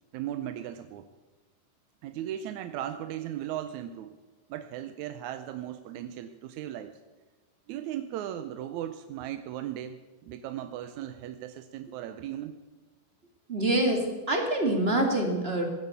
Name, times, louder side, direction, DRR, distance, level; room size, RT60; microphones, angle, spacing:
voice 1, 0.1-1.1 2.0-4.2 4.5-7.0 7.7-12.6, right 11 dB, 75° right, 10 dB, 1.8 m, -37 dB
voice 2, 13.5-15.6, right 1 dB, 20° right, 3 dB, 2.0 m, -26 dB
16.5 x 10.5 x 8.3 m, 1.2 s
omnidirectional pair, 3.9 m